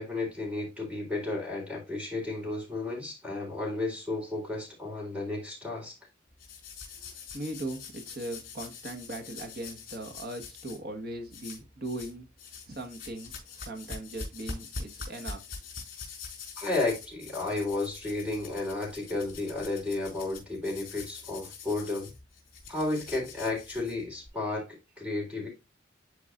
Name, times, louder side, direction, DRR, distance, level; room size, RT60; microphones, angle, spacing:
voice 1, 0.0-5.9 16.6-22.1 22.7-24.7 25.0-25.5, left 2 dB, 5° right, 3.8 m, -32 dB
sound 1, 6.4-10.8 11.3-12.1 12.4-24.3, left 4 dB, 50° left, 3.8 m, -44 dB
voice 2, 7.0-12.3 12.7-15.4, right 1 dB, 55° right, 1.5 m, -39 dB
11.0 x 4.6 x 2.5 m
head